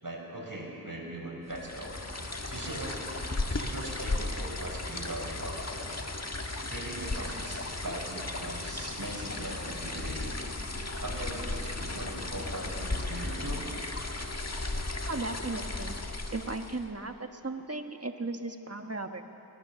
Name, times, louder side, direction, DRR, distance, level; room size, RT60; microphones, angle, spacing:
voice 1, 0.0-2.0 2.4-3.2 3.5-5.8 6.7-10.4 11.0-13.7, right 1 dB, 55° right, -1 dB, 5.2 m, -40 dB
sound 1, 1.5-16.9, left 2 dB, 40° left, 1.5 m, -35 dB
voice 2, 15.1-16.0 16.3-19.2, right 2 dB, 40° right, 5 dB, 1.4 m, -36 dB
23.5 x 19.0 x 7.0 m, 2.8 s
wide cardioid pair, 45°, 39 cm